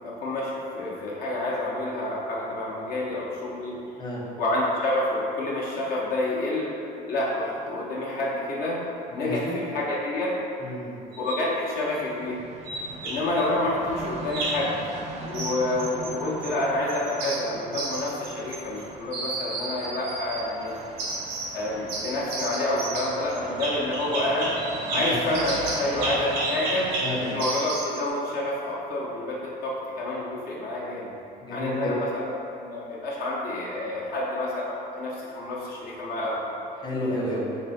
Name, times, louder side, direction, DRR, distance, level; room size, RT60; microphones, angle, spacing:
voice 1, 0.0-3.8 4.4-6.7 7.1-8.8 9.1-10.4 11.2-12.4 13.0-14.7 15.2-20.7 21.5-24.5 24.9-26.9 27.2-31.2 31.5-32.3 32.6-36.4, left 1 dB, 65° left, -6 dB, 0.7 m, -28 dB
voice 2, 9.1-9.5 10.6-11.0 24.9-25.4 27.0-27.4 31.4-31.9 36.8-37.5, left 1 dB, 25° left, -6 dB, 0.8 m, -31 dB
sound 1, 11.1-11.5 12.7-13.5 14.3-14.7 15.3-16.6 16.9-18.8 19.1-20.5 21.0-21.6 21.9-28.0, right 2 dB, 90° right, 0.6 m, -32 dB
sound 2, 11.8-27.4, right 3 dB, 40° right, 0.4 m, -40 dB
3.7 x 2.1 x 4.0 m, 2.7 s
cardioid pair, 110°, 17 cm